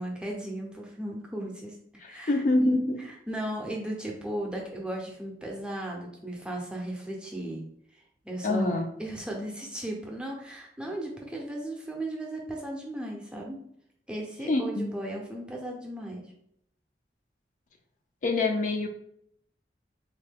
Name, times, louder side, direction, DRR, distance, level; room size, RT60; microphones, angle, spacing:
voice 1, 0.0-1.8 2.0-7.6 8.2-13.6 14.1-16.2, right 1 dB, 5° right, -2 dB, 0.6 m, -36 dB
voice 2, 2.0-3.0 8.4-8.9 14.5-14.9 18.2-18.9, left 2 dB, 45° left, 3 dB, 0.3 m, -25 dB
3.5 x 2.2 x 3.4 m, 0.71 s
head